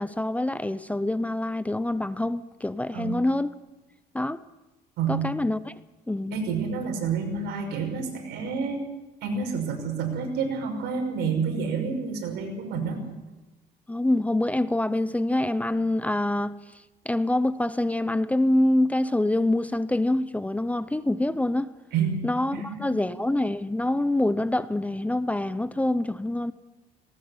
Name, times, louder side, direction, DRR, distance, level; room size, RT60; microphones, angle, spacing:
voice 1, 0.0-3.5 4.1-4.4 5.1-5.7 6.1-6.4 13.9-16.6 17.1-21.7 22.2-26.5, left 1 dB, 10° left, 0.6 m, -25 dB
voice 2, 5.0-5.3 6.3-8.8 9.2-13.0 21.9-22.2 22.5-23.0, right 5 dB, 80° right, 5.8 m, -29 dB
19.0 x 18.5 x 7.2 m
cardioid pair, 110°, 17 cm